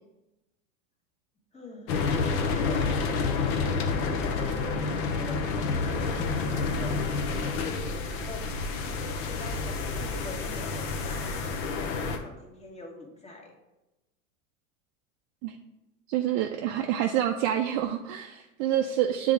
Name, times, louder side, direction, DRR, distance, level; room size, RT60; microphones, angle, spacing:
voice 1, 1.5-2.0 2.4-3.0 3.7-11.4 12.1-13.5, left 3 dB, 15° left, 0 dB, 1.3 m, -44 dB
sound 1, 1.9-12.2, left 4 dB, 60° left, 0.9 m, -29 dB
voice 2, 16.1-19.3, right 11 dB, 50° right, 4 dB, 0.5 m, -27 dB
7.8 x 3.6 x 3.4 m, 0.99 s
hypercardioid pair, 100°, 41 cm